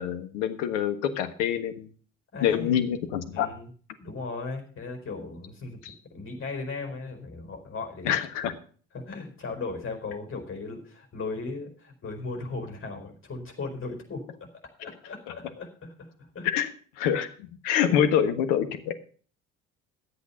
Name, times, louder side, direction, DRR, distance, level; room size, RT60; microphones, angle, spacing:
voice 1, 0.0-1.9 2.4-3.5 5.8-5.9 8.0-8.5 15.3-15.4 16.4-16.7 17.0-19.0, left 9 dB, 65° left, 10 dB, 1.5 m, -26 dB
voice 2, 2.3-2.8 3.3-3.7 4.0-8.1 8.9-14.2 14.8-16.5 17.9-18.0, left 3 dB, 30° left, 4 dB, 4.7 m, -37 dB
13.5 x 8.4 x 5.7 m, 0.43 s
figure-of-eight pair, 55°, 39 cm